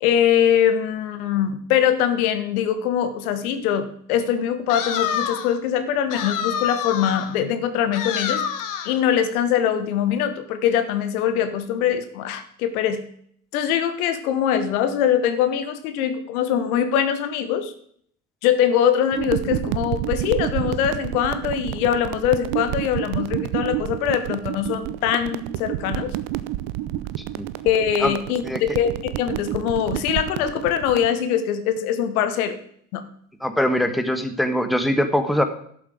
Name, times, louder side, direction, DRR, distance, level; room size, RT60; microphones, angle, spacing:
voice 1, 0.0-8.4 8.8-13.0 13.5-17.7 18.4-26.1 27.6-28.9 29.2-32.6 32.9-33.0, left 9 dB, 70° left, 10 dB, 1.4 m, -22 dB
sound 1, 4.7-5.6 6.1-7.3 7.9-9.0, left 8 dB, 45° left, 1.5 m, -27 dB
sound 2, 19.1-31.1, right 14 dB, 55° right, 0.8 m, -29 dB
voice 2, 33.4-35.4, equal, ahead, 8 dB, 1.3 m, -22 dB
12.5 x 7.4 x 5.0 m, 0.63 s
hypercardioid pair, 70°, 45 cm